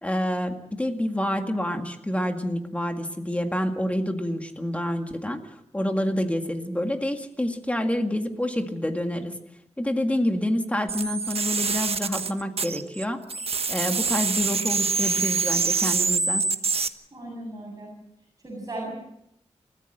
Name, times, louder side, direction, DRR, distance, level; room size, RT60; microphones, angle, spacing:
voice 1, 0.0-9.3 9.8-13.2 13.7-16.5, left 1 dB, 10° left, 5 dB, 1.9 m, -28 dB
sound 1, 10.9-13.0 13.3-16.9, right 4 dB, 60° right, 1.2 m, -25 dB
voice 2, 17.1-17.9 18.4-18.9, right 1 dB, 30° right, -2 dB, 7.8 m, -36 dB
29.5 x 14.5 x 7.9 m, 0.77 s
wide cardioid pair, 135°, 12 cm